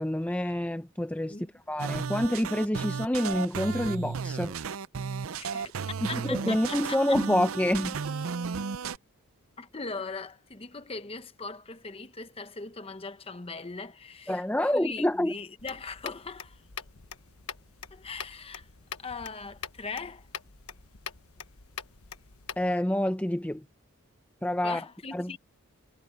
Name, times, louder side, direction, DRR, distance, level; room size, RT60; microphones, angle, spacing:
voice 1, 0.0-1.4 1.7-4.5 6.1-8.0 14.3-15.3 22.6-23.6 24.4-24.8 25.1-25.4, left 1 dB, 5° left, 0.7 m, -27 dB
sound 1, 1.8-9.0, right 5 dB, 65° right, 0.5 m, -34 dB
voice 2, 5.4-5.7 6.1-7.2 9.6-16.6 17.9-18.7 19.0-20.3 24.6-25.4, left 4 dB, 25° left, 1.0 m, -40 dB
sound 2, 15.6-22.7, left 7 dB, 75° left, 1.3 m, -44 dB
head